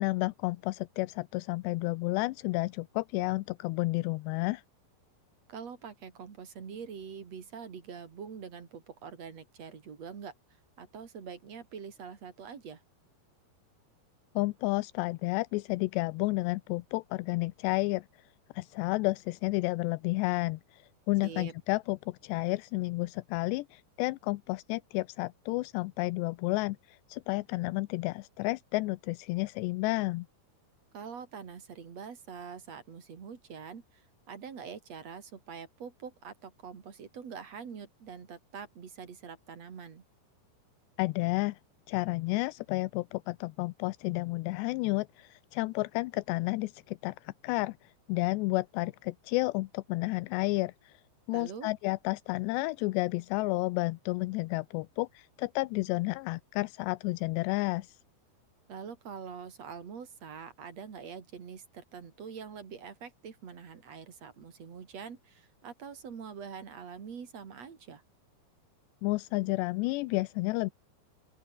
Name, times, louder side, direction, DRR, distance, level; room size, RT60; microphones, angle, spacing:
voice 1, 0.0-4.6 14.4-18.1 18.5-30.3 41.0-41.6 41.9-51.0 51.3-58.0 69.0-70.7, left 22 dB, 85° left, 2.7 m, -31 dB
voice 2, 5.5-10.3 10.8-12.8 21.2-21.5 30.9-40.0 51.3-51.7 58.7-68.0, right 6 dB, 40° right, 3.3 m, -44 dB
open air
omnidirectional pair, 5.1 m